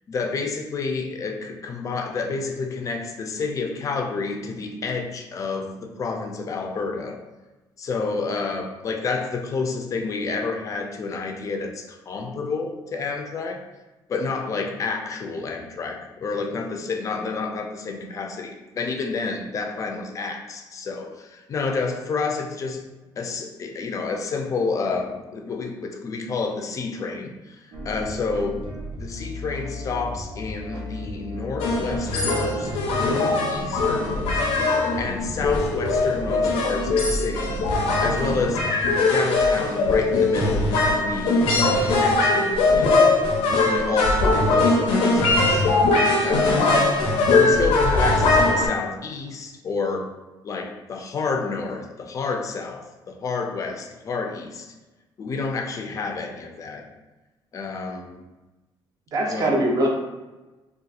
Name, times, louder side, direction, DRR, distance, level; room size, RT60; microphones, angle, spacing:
voice 1, 0.1-7.2 7.8-13.6 14.1-22.9 23.2-38.7 39.1-42.9 43.5-45.6 46.2-46.7 47.2-50.1 50.4-54.7 55.2-56.9 57.5-58.2 59.3-59.5, left 4 dB, 35° left, 3 dB, 0.4 m, -29 dB
sound 1, 27.7-38.5, equal, 85° right, 0.7 m, -35 dB
sound 2, 31.6-48.7, left 3 dB, 85° left, 0.6 m, -21 dB
voice 2, 59.1-59.9, right 1 dB, 40° right, 0 dB, 0.6 m, -23 dB
2.8 x 2.3 x 2.3 m, 1.1 s
cardioid pair, 115°, 9 cm